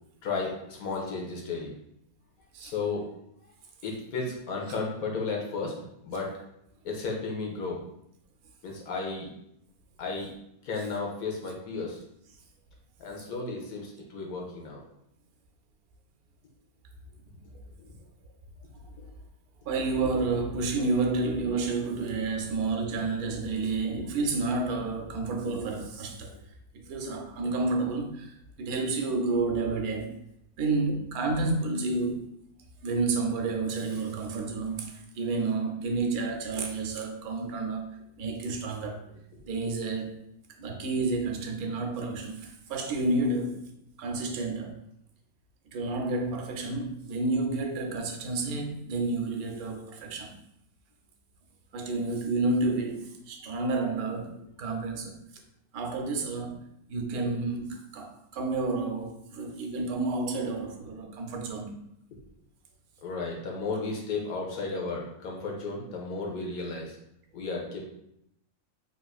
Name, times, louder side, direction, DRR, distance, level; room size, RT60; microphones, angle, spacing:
voice 1, 0.2-1.7 2.6-3.1 3.8-5.7 6.0-6.3 6.8-7.8 8.6-9.3 10.0-10.3 10.6-12.0 13.0-14.8 17.8-17.9 19.0-19.1 39.4-39.5 62.1-62.3 63.0-67.0 67.3-67.9, left 4 dB, 75° left, 1.2 m, -34 dB
voice 2, 19.6-26.3 26.9-30.1 30.6-32.2 32.8-37.9 38.2-39.0 39.4-40.1 40.6-43.6 44.0-44.8 45.7-50.3 51.7-55.2 55.7-56.6 56.9-61.7, right 3 dB, 80° right, 1.0 m, -30 dB
3.5 x 2.4 x 2.3 m
omnidirectional pair, 1.5 m